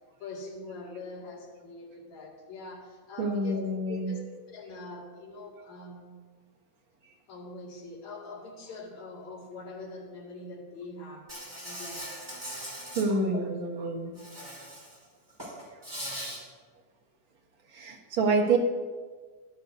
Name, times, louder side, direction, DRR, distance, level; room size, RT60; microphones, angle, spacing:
voice 1, 0.2-3.6 3.9-6.3 7.3-11.3 11.6-12.3, left 2 dB, 60° left, -4 dB, 3.5 m, -43 dB
voice 2, 3.2-4.1 13.0-14.2 17.7-18.6, right 3 dB, 50° right, -1 dB, 1.7 m, -27 dB
Insect, 11.3-13.0 14.2-15.0 15.3-16.4, equal, 5° right, 4.1 m, -40 dB
18.0 x 11.5 x 2.7 m, 1.5 s
omnidirectional pair, 3.8 m